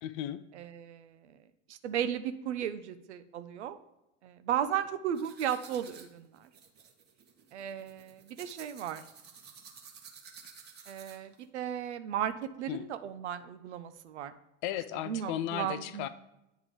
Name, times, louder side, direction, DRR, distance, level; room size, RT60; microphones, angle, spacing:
voice 1, 0.0-0.4 12.7-12.9 14.6-16.1, left 11 dB, 40° left, 13 dB, 0.4 m, -35 dB
voice 2, 0.5-1.4 1.7-3.8 4.2-6.5 7.5-9.0 10.9-14.3 15.0-16.1, right 10 dB, 65° right, 11 dB, 0.6 m, -35 dB
sound 1, 5.1-11.4, right 6 dB, 25° right, 1.0 m, -53 dB
9.1 x 3.6 x 4.9 m, 0.91 s
figure-of-eight pair, 75°, 37 cm